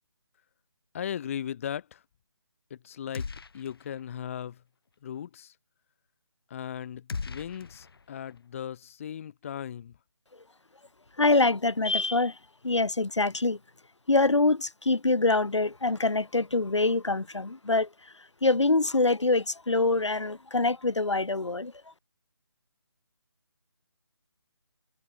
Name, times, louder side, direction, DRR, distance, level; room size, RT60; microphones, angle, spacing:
voice 1, 0.9-2.0 2.7-3.3 3.5-4.6 5.0-5.5 6.5-9.9, left 9 dB, 30° left, 1.3 m, -37 dB
sound 1, 3.1-4.0 4.3-4.4 7.1-8.4, left 4 dB, 55° left, 7.4 m, -39 dB
voice 2, 11.2-12.4 12.6-13.6 14.1-17.9 18.4-21.7, left 3 dB, 85° left, 2.6 m, -25 dB
figure-of-eight pair, 160°, 15 cm